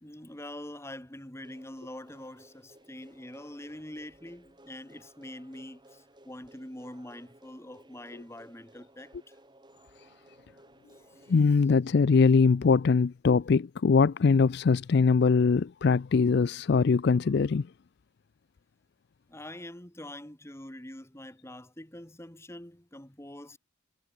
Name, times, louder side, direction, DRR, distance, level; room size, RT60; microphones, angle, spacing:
voice 1, 0.0-9.4 10.9-11.3 19.3-23.6, left 1 dB, 10° left, 1.7 m, -45 dB
sound 1, 1.4-11.4, right 1 dB, 20° right, 3.6 m, -58 dB
voice 2, 11.3-17.7, left 5 dB, 50° left, 0.4 m, -22 dB
head